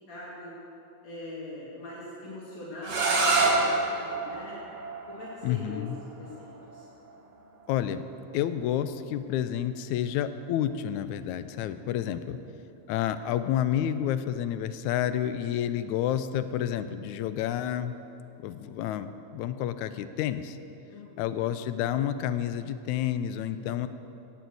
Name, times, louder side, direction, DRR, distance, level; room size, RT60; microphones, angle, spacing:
voice 1, 0.1-0.6 1.0-4.5 5.1-5.9 6.2-6.9 11.8-12.3 20.9-21.5 23.5-23.7, left 2 dB, 65° left, -7 dB, 3.4 m, -42 dB
sound 1, 2.8-8.6, right 3 dB, 60° right, 2.8 m, -29 dB
voice 2, 5.4-6.0 7.7-8.0 8.3-12.4 12.9-18.0 18.4-20.6 21.2-23.9, left 10 dB, 85° left, 12 dB, 2.0 m, -29 dB
17.0 x 7.1 x 7.8 m, 2.8 s
omnidirectional pair, 3.3 m